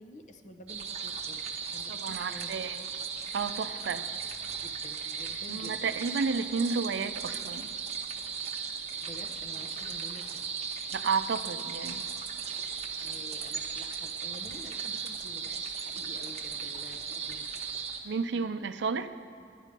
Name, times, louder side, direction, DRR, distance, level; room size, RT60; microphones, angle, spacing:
voice 1, 0.0-2.7 3.0-3.1 3.8-3.9 4.6-6.1 8.5-8.6 9.0-10.4 13.0-17.5, left 1 dB, 45° left, 7 dB, 0.7 m, -50 dB
sound 1, 0.7-18.0, right 6 dB, 40° right, 0.8 m, -37 dB
voice 2, 1.9-2.8 3.3-4.0 5.5-7.7 10.9-12.0 18.0-19.1, right 5 dB, 85° right, 11 dB, 0.5 m, -32 dB
sound 2, 4.9-5.8 7.1-7.6 8.9-9.0 9.7-10.2 11.0-11.1 11.8-12.3, equal, 70° left, 3.3 m, -59 dB
11.0 x 9.9 x 5.2 m, 2.6 s
head